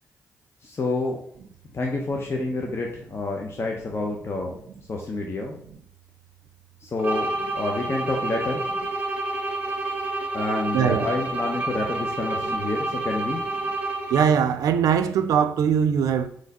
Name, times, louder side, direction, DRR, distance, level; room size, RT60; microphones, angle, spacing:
voice 1, 0.6-1.2 1.7-4.6 4.9-5.6 6.8-8.7 10.3-13.4, left 2 dB, 45° left, 0.8 m, -28 dB
sound 1, 7.0-14.5, right 2 dB, 25° right, 1.7 m, -29 dB
voice 2, 10.7-11.1 14.1-16.3, right 7 dB, 75° right, 0.4 m, -21 dB
4.1 x 3.2 x 4.1 m
supercardioid pair, 45°, 6 cm